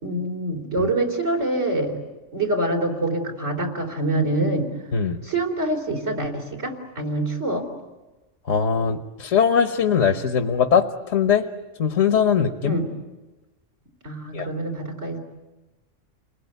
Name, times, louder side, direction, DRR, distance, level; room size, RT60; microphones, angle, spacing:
voice 1, 0.0-2.0 2.3-4.7 5.2-7.6 12.6-12.9 14.0-15.2, right 2 dB, 80° right, 2 dB, 4.3 m, -25 dB
voice 2, 4.9-5.2 8.4-11.5 11.8-12.8 14.3-14.5, left 7 dB, 80° left, 8 dB, 1.5 m, -21 dB
29.5 x 21.0 x 9.3 m, 1.1 s
omnidirectional pair, 1.3 m